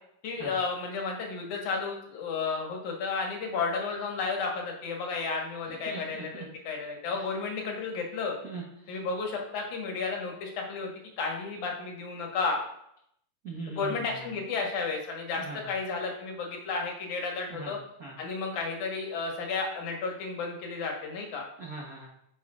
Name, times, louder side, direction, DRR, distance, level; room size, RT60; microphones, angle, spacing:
voice 1, 0.2-8.4 8.9-10.9 11.2-12.6 13.7-17.8 18.2-21.5, left 4 dB, 70° left, 0 dB, 2.6 m, -32 dB
voice 2, 5.7-6.5 7.1-7.2 8.4-9.0 13.4-14.2 15.4-15.7 17.5-18.2 21.6-22.1, right 3 dB, 75° right, -4 dB, 0.8 m, -41 dB
9.3 x 6.6 x 2.4 m, 0.73 s
omnidirectional pair, 3.7 m